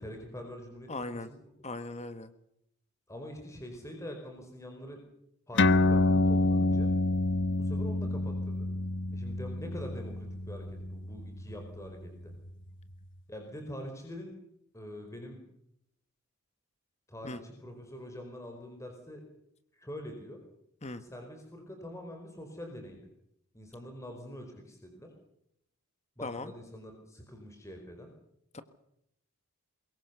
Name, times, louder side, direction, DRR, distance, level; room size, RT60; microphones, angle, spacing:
voice 1, 0.0-1.4 3.1-5.0 5.5-6.9 7.6-8.7 9.1-12.3 13.3-14.3 14.7-15.4 17.1-19.2 19.7-20.4 21.0-23.0 23.5-25.1 26.2-28.1, equal, 15° left, 3 dB, 4.7 m, -44 dB
voice 2, 0.9-1.3 1.6-2.3 17.2-17.4 20.8-21.0 26.2-26.5 28.5-28.6, left 2 dB, 30° left, 11 dB, 1.5 m, -38 dB
sound 1, 5.6-12.5, left 2 dB, 55° left, 1.2 m, -28 dB
23.5 x 22.0 x 6.9 m, 0.76 s
head